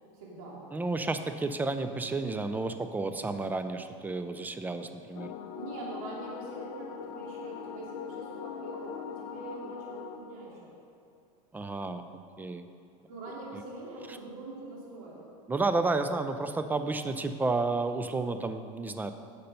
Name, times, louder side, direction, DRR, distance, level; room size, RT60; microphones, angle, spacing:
voice 1, 0.1-0.6 5.5-10.7 13.1-15.2, right 2 dB, 80° right, -4 dB, 2.5 m, -43 dB
voice 2, 0.7-5.3 11.5-12.0 12.4-12.6 13.5-13.6 15.5-19.1, right 3 dB, 10° right, 9 dB, 0.4 m, -31 dB
sound 1, 5.1-10.2, left 8 dB, 60° left, 0.7 m, -41 dB
8.5 x 6.8 x 5.3 m, 2.5 s
supercardioid pair, 130°, 18 cm